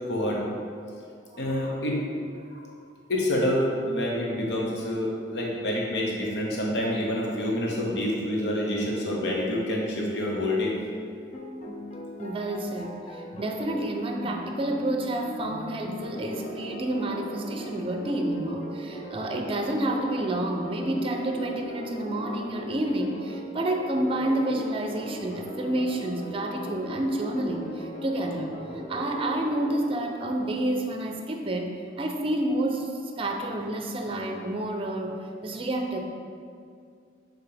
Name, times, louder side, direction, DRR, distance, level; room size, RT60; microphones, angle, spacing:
voice 1, 0.1-0.5 1.4-2.0 2.5-2.6 3.1-10.8, left 1 dB, 75° left, -2 dB, 0.9 m, -27 dB
sound 1, 11.3-30.0, equal, 40° left, 0.5 m, -39 dB
voice 2, 12.2-28.6 28.9-32.9 33.2-35.2 35.4-36.0, right 1 dB, 30° right, 3 dB, 0.5 m, -29 dB
6.9 x 4.0 x 3.4 m, 2.3 s
head